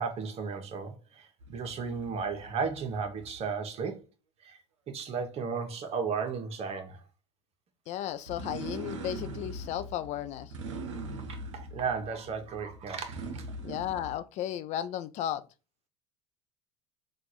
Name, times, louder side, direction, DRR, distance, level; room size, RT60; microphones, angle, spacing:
voice 1, 0.0-4.0 4.4-4.6 4.9-7.0 11.3-13.5, right 5 dB, 45° right, 1.1 m, -34 dB
sound 1, 1.4-3.5 8.3-14.2, right 2 dB, 85° right, 0.7 m, -41 dB
voice 2, 7.9-10.5 13.6-15.4, left 11 dB, 50° left, 0.5 m, -34 dB
3.7 x 2.5 x 4.5 m
hypercardioid pair, 80°, 15 cm